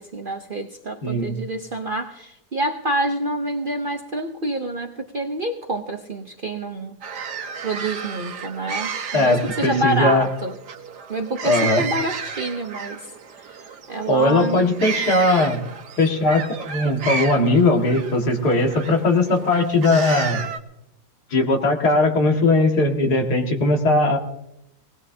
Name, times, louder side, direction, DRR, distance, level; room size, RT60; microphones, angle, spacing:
voice 1, 0.0-7.0 7.6-10.5 11.1-13.1 13.5-14.6, right 1 dB, 45° right, 4 dB, 0.7 m, -27 dB
voice 2, 1.0-1.3 9.1-10.3 11.4-11.8 14.1-15.6 16.0-20.4 21.3-24.2, left 2 dB, 70° left, 2 dB, 2.4 m, -19 dB
sound 1, 7.0-20.6, right 6 dB, 80° right, 1.7 m, -32 dB
20.0 x 19.0 x 2.8 m, 0.83 s
omnidirectional pair, 1.7 m